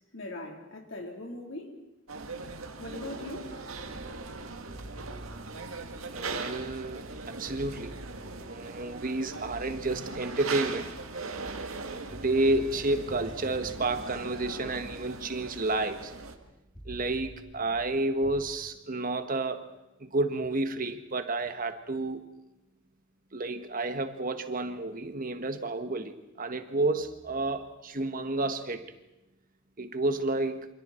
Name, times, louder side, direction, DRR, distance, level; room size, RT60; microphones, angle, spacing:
voice 1, 0.1-1.7 2.8-3.5, left 2 dB, 65° left, 1 dB, 3.9 m, -40 dB
sound 1, 2.1-16.4, right 4 dB, 85° right, 1.9 m, -40 dB
sound 2, 3.8-11.0 11.3-18.3, equal, 10° left, 7.4 m, -48 dB
voice 2, 6.1-8.0 8.4-10.9 12.1-16.1 16.8-19.7 20.0-22.2 23.3-28.9 29.8-30.7, right 2 dB, 40° right, 8 dB, 1.3 m, -30 dB
28.0 x 26.5 x 4.4 m, 0.93 s
head